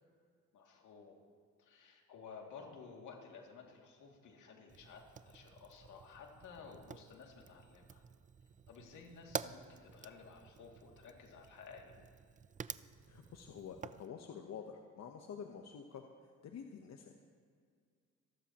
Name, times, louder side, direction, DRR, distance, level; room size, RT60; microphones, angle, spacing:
voice 1, 0.5-1.2 1.6-8.0 8.7-11.9, left 5 dB, 80° left, 0 dB, 2.5 m, -54 dB
Fire, 4.7-14.1, right 6 dB, 25° right, 0.4 m, -49 dB
voice 2, 13.0-16.0 16.4-17.1, left 7 dB, 60° left, 3 dB, 1.0 m, -48 dB
27.5 x 12.0 x 3.0 m, 2.1 s
cardioid pair, 90°, 30 cm